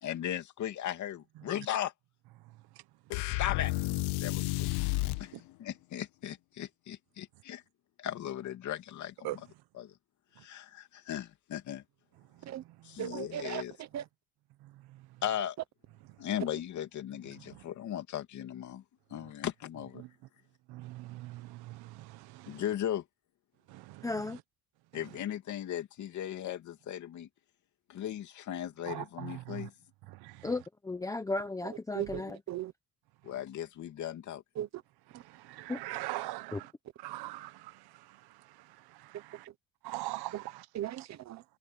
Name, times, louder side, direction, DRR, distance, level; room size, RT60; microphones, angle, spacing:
voice 1, 0.0-1.9 3.4-3.7 4.1-4.8 5.2-5.3 5.6-7.6 8.0-9.4 9.7-9.9 10.4-11.8 12.9-13.7 15.2-15.5 16.2-18.8 19.1-20.0 22.5-23.0 24.9-27.3 27.9-29.7 33.2-34.4, left 11 dB, 50° left, 2.8 m, -37 dB
sound 1, 3.1-5.3, left 20 dB, 85° left, 1.0 m, -31 dB
voice 2, 13.0-14.0 31.6-32.7 34.5-34.8 35.1-35.2 39.1-39.2 40.3-40.4 40.7-41.4, right 12 dB, 45° right, 1.0 m, -38 dB
voice 3, 20.7-22.6 23.7-24.1 24.9-25.0 28.9-29.7 30.1-30.5 35.3-36.7 37.0-38.2 38.5-39.5 39.8-40.6, right 18 dB, 75° right, 1.2 m, -42 dB
voice 4, 24.0-24.4 30.4-32.4 35.7-35.8 36.5-36.6, left 2 dB, 10° left, 0.9 m, -35 dB
open air
cardioid pair, 170°, 38 cm